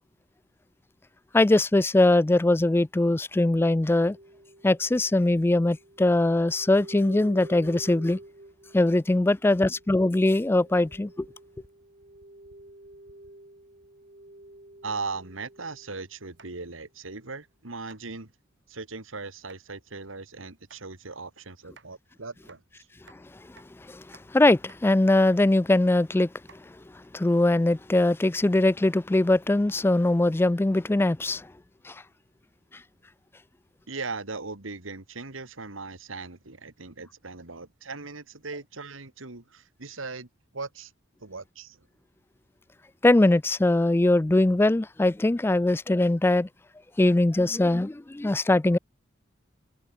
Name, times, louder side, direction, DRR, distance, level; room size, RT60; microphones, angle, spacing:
voice 1, 1.3-4.2 4.6-8.2 8.7-11.3 23.9-24.0 24.3-26.3 27.1-31.5 31.9-32.0 43.0-46.5 47.0-48.8, left 2 dB, 10° left, 0.3 m, -21 dB
sound 1, 4.1-16.1 16.4-16.5, right 1 dB, 40° right, 2.4 m, -49 dB
voice 2, 14.8-18.3 18.7-22.6 33.9-40.3 40.5-40.9 41.2-41.8, right 4 dB, 85° right, 2.3 m, -38 dB
sound 2, 16.3-16.9 17.3-17.4 17.8-18.0 19.3-19.6 20.5-20.8 21.6-21.9 22.4-23.2 23.6-23.7 24.0-24.3 24.5-24.8 25.1-25.4 25.8-25.9 26.4-27.8, right 4 dB, 60° right, 7.2 m, -56 dB
head